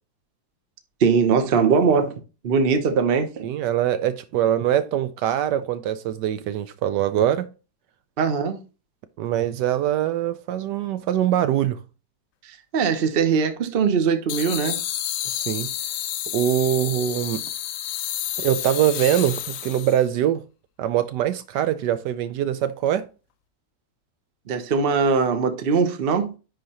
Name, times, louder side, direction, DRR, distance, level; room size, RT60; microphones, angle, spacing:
voice 1, 1.0-3.5 8.2-8.6 12.7-14.8 24.5-26.3, right 5 dB, 45° right, 0.8 m, -21 dB
voice 2, 3.4-7.5 9.2-11.8 15.3-15.7 16.3-17.4 18.4-20.4 20.8-23.0, right 11 dB, 75° right, 1.1 m, -23 dB
sound 1, 14.3-20.0, left 12 dB, 85° left, 0.7 m, -30 dB
10.0 x 3.9 x 2.9 m
omnidirectional pair, 1.9 m